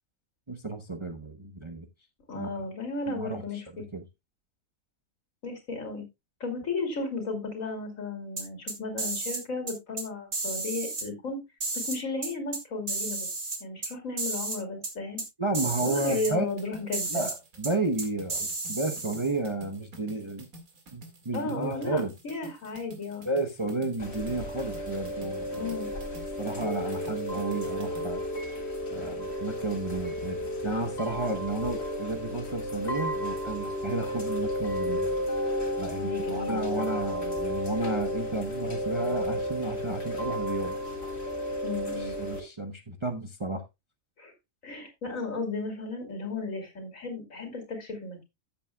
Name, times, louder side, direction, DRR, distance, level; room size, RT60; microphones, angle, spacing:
voice 1, 0.5-1.9 2.3-2.5 3.1-3.6 3.9-4.0 15.4-16.5 17.1-20.5 20.9-22.1 23.2-25.7 26.4-28.2 28.9-35.1 35.8-40.8 42.0-43.6, right 2 dB, 25° right, 0.7 m, -32 dB
voice 2, 2.3-3.8 5.4-6.0 6.4-11.4 11.7-13.3 13.6-15.2 15.8-17.3 21.3-23.3 25.5-25.9 35.9-37.0 41.6-42.2 44.2-44.3 44.6-48.2, left 3 dB, 70° left, 3.0 m, -34 dB
sound 1, 8.4-9.4 9.7-10.0 10.3-11.1 11.6-12.6 12.9-13.9 14.2-14.6 14.8-14.9 15.2-15.3 15.5-16.3 16.9-17.4 17.6-17.7 18.0-19.3, right 3 dB, 55° right, 2.5 m, -33 dB
sound 2, 15.8-28.1, right 1 dB, 85° right, 2.6 m, -50 dB
Chime / Rain, 24.0-42.4, left 1 dB, 50° left, 2.3 m, -32 dB
14.0 x 7.5 x 2.2 m
omnidirectional pair, 1.5 m